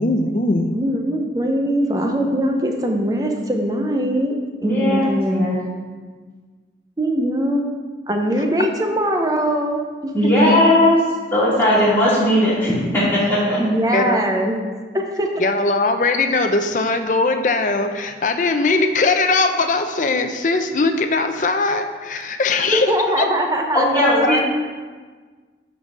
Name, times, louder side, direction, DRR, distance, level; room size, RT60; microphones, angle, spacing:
voice 1, 0.0-0.7 13.9-14.2 15.4-22.9 23.2-23.3, left 3 dB, 45° left, 7 dB, 0.5 m, -20 dB
voice 2, 0.7-4.3 4.6-5.5 7.0-7.7 8.1-10.6 13.6-14.5 14.9-15.3 22.7-24.4, right 1 dB, 20° right, 3 dB, 0.7 m, -21 dB
voice 3, 4.6-5.6 10.1-10.9 11.3-13.6 23.7-24.4, left 1 dB, 10° left, -10 dB, 2.4 m, -17 dB
8.8 x 4.1 x 4.7 m, 1.5 s
head